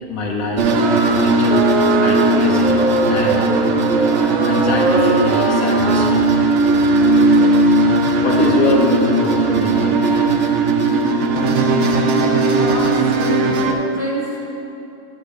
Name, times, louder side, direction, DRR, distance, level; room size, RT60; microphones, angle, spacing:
voice 1, 0.1-0.7 1.2-1.6 2.0-2.8 3.1-3.4 4.4-6.4 7.9-10.2, left 2 dB, 80° left, -1 dB, 1.3 m, -23 dB
sound 1, 0.6-13.7, right 2 dB, 65° right, 0.8 m, -17 dB
sound 2, 0.7-6.2, right 4 dB, 80° right, 0.3 m, -21 dB
voice 2, 12.1-14.5, right 1 dB, 25° left, -5 dB, 1.5 m, -28 dB
9.7 x 3.6 x 6.7 m, 2.8 s
omnidirectional pair, 1.5 m